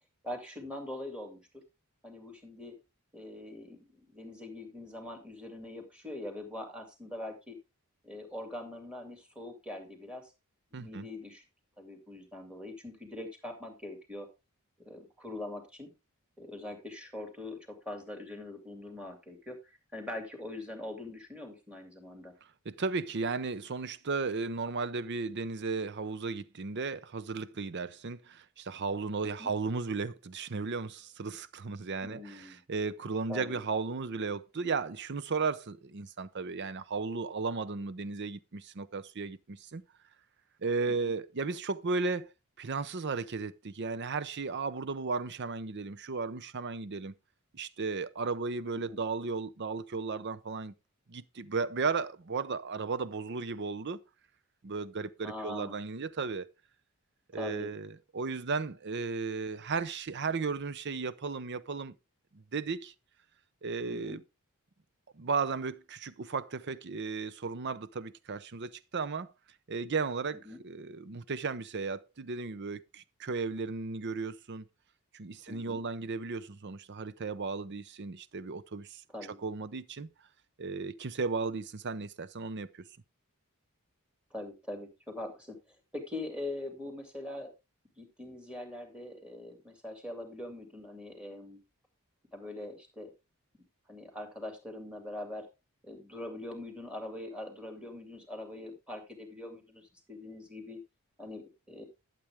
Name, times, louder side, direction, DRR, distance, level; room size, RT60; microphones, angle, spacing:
voice 1, 0.2-1.6 2.0-2.7 3.1-7.6 8.0-10.3 10.7-11.4 11.8-14.3 14.8-15.9 16.4-22.3 29.2-29.5 32.0-32.6 33.3-33.6 48.9-49.0 55.2-55.8 57.3-57.7 63.9-64.2 70.5-70.6 75.5-75.8 79.1-79.4 84.3-87.5 88.0-91.6 92.3-93.1 93.9-95.5 95.8-100.8 101.2-101.8, left 1 dB, 5° right, 2.5 m, -43 dB
voice 2, 10.7-11.1 22.4-39.8 40.6-42.3 42.6-47.1 47.5-50.7 51.1-54.0 54.6-56.5 57.3-61.9 62.3-62.9 63.6-64.2 65.1-69.3 69.7-74.6 75.1-79.0 79.4-80.1 80.6-82.8, right 4 dB, 50° right, 0.6 m, -35 dB
11.5 x 7.6 x 3.5 m
head